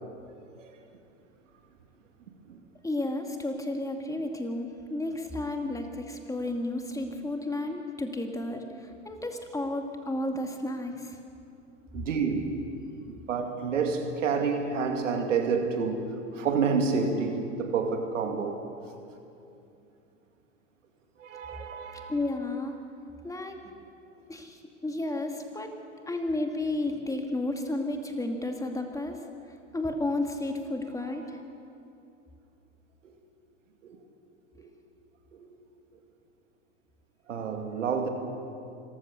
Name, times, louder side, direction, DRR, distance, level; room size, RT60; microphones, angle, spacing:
voice 1, 2.8-11.2 22.1-22.8 23.2-23.6 24.3-25.7 26.1-29.2 29.7-31.4, left 2 dB, 10° left, 2.3 m, -32 dB
voice 2, 11.9-12.6 13.1-18.6 21.2-22.1 31.0-31.1 33.0-33.1 33.8-34.0 34.6-34.7 35.4-35.5 37.3-38.1, right 5 dB, 80° right, 2.4 m, -29 dB
26.0 x 15.0 x 6.8 m
hypercardioid pair, 95°, 37 cm